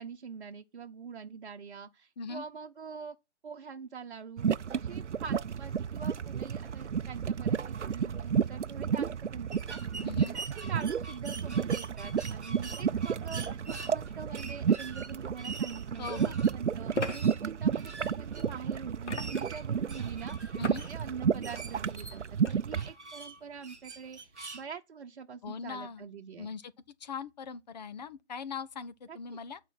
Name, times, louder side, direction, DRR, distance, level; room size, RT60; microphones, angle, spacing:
voice 1, 0.0-3.2 3.4-4.5 4.7-26.5 29.1-29.4, right 6 dB, 50° right, 1.0 m, -44 dB
Mud Volcano Field - Salton Sea, 4.4-22.9, right 7 dB, 85° right, 0.6 m, -32 dB
sound 1, 9.5-24.6, right 3 dB, ahead, 0.4 m, -46 dB
voice 2, 10.0-10.4 16.0-16.4 20.6-20.8 25.4-26.0 26.4-26.7 27.0-29.6, left 5 dB, 40° left, 0.7 m, -40 dB
sound 2, 15.4-15.5 16.9-17.2 19.0-19.6 20.6-20.9 21.3-21.6 22.4-22.5, left 2 dB, 85° left, 1.6 m, -36 dB
8.9 x 4.5 x 6.0 m
figure-of-eight pair, 140°, 35 cm